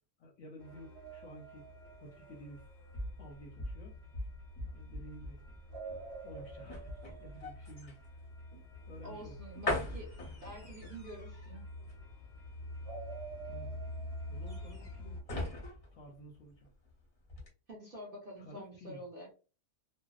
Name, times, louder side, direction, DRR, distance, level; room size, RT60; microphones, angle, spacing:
voice 1, 0.2-1.7 2.0-2.6 3.2-4.0 4.6-5.4 6.2-6.9 7.2-8.0 8.9-9.4 9.8-10.0 13.5-13.8 14.3-15.2 15.9-16.7 18.4-19.0, equal, 65° left, 0 dB, 0.8 m, -52 dB
sound 1, 0.6-15.2, left 1 dB, 10° right, 0.7 m, -48 dB
sound 2, 1.0-3.0 5.7-8.6 12.8-15.1, right 5 dB, 80° right, 0.5 m, -49 dB
sound 3, 2.5-16.9 17.3-17.5, left 1 dB, 35° left, 0.6 m, -42 dB
voice 2, 9.0-10.1 10.4-11.7 17.7-19.3, right 1 dB, 45° right, -3 dB, 0.8 m, -47 dB
2.6 x 2.0 x 2.3 m, 0.34 s
omnidirectional pair, 1.7 m